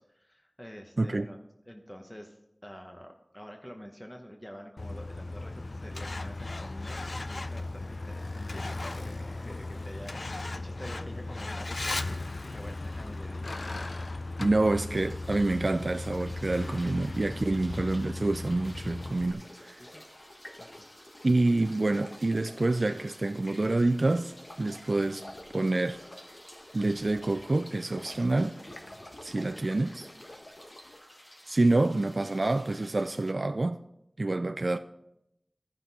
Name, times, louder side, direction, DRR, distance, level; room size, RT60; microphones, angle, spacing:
voice 1, 0.0-1.4 1.7-13.6 17.5-17.6 19.8-20.3 20.6-20.9 29.3-30.0, equal, 15° left, 0.9 m, -48 dB
Truck, 4.8-19.3, left 2 dB, 80° left, 0.4 m, -36 dB
voice 2, 14.4-19.8 21.2-25.2 25.5-26.0 26.7-28.6 29.2-30.1 31.5-33.8 34.2-34.8, right 2 dB, 65° right, 0.3 m, -27 dB
sound 1, 14.9-33.3, equal, 35° left, 1.4 m, -53 dB
Stream, 19.0-31.0, left 1 dB, 60° left, 1.3 m, -50 dB
14.0 x 6.0 x 4.0 m
wide cardioid pair, 40°, 0 cm